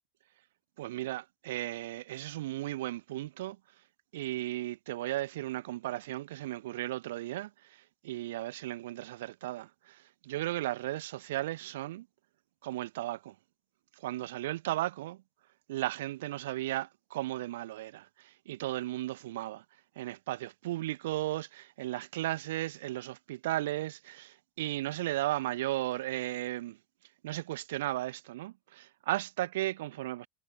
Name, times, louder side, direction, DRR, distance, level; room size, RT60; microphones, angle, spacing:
voice 1, 0.8-3.6 4.1-12.1 12.6-13.3 14.0-15.2 15.7-19.6 20.0-26.8 27.2-30.3, right 16 dB, 85° right, 2.4 m, -35 dB
supercardioid pair, 150°, 0 cm